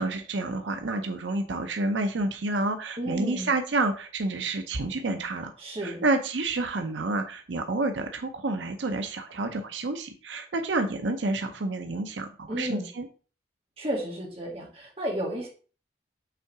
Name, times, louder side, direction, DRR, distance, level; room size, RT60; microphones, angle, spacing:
voice 1, 0.0-5.5 5.8-13.1, right 2 dB, 90° right, 6 dB, 0.7 m, -29 dB
voice 2, 3.0-3.5 5.6-6.0 12.5-12.9 13.8-15.5, right 1 dB, 30° right, -2 dB, 1.8 m, -32 dB
5.8 x 3.7 x 4.6 m, 0.38 s
head